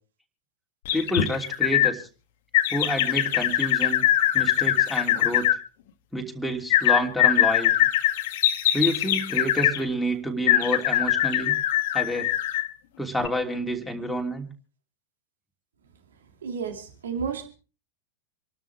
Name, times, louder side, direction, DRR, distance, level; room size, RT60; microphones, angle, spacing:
sound 1, 0.9-1.9 2.5-5.6 6.7-9.8 10.5-12.7 13.2-13.3, left 13 dB, 55° left, 1.3 m, -22 dB
voice 1, 0.9-2.1 2.7-4.0 4.3-5.5 6.1-7.7 8.7-11.6 11.9-12.3 13.0-14.5, equal, 5° left, 0 dB, 3.1 m, -28 dB
voice 2, 16.4-17.5, right 6 dB, 65° right, 5 dB, 2.6 m, -31 dB
27.5 x 12.5 x 3.5 m, 0.37 s
figure-of-eight pair, 90°, 0 cm